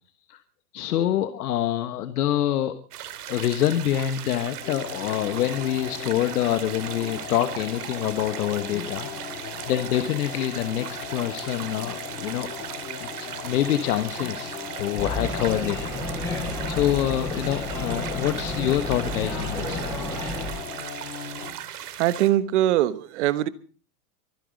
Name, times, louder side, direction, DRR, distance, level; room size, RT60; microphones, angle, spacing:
voice 1, 0.7-2.7 3.3-9.1 9.7-12.5 13.0-19.9, left 12 dB, 85° left, 11 dB, 1.3 m, -26 dB
sound 1, 2.9-22.3, right 11 dB, 85° right, 2.8 m, -38 dB
sound 2, 4.6-21.6, left 7 dB, 70° left, 4.2 m, -38 dB
sound 3, 14.9-20.5, left 2 dB, 5° left, 5.5 m, -31 dB
voice 2, 22.0-23.5, right 13 dB, 50° right, 14 dB, 1.3 m, -22 dB
24.5 x 10.5 x 5.2 m, 0.40 s
supercardioid pair, 170°, 45 cm